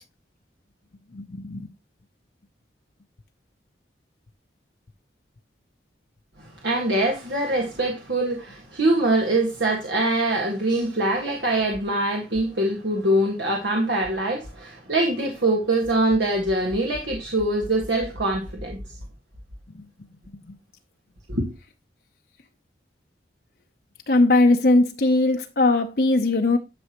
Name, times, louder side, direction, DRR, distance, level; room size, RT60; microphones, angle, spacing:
voice 1, 1.1-1.7 24.1-26.6, left 2 dB, 55° left, 0.8 m, -19 dB
voice 2, 6.4-18.8 21.3-21.5, right 1 dB, 75° right, 1.8 m, -23 dB
11.5 x 6.2 x 3.0 m
head